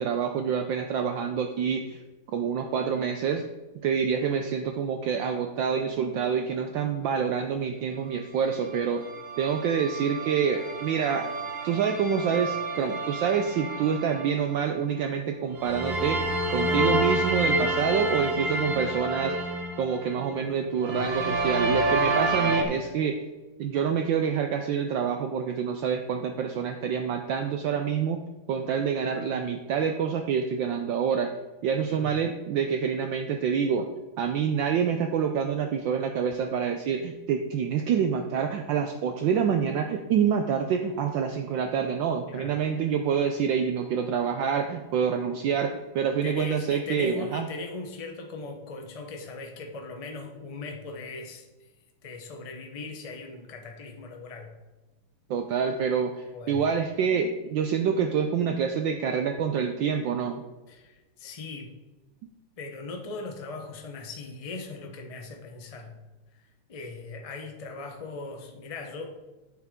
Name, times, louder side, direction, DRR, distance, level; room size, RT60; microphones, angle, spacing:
voice 1, 0.0-2.0 2.3-3.4 3.7-9.1 9.4-11.3 11.6-16.2 16.5-19.3 19.8-23.2 23.6-28.2 28.5-31.3 31.6-33.9 34.2-47.5 55.3-60.4, right 7 dB, 70° right, 5 dB, 1.2 m, -27 dB
sound 1, 8.7-14.5 15.6-20.4 20.8-22.6, right 1 dB, 40° right, 0.9 m, -29 dB
voice 2, 31.8-32.2 42.3-42.5 46.2-51.5 52.0-54.5 56.3-56.6 60.7-61.7 62.6-65.9 66.7-69.2, left 3 dB, 55° left, 3 dB, 0.3 m, -39 dB
9.0 x 8.1 x 3.6 m, 1.2 s
omnidirectional pair, 2.4 m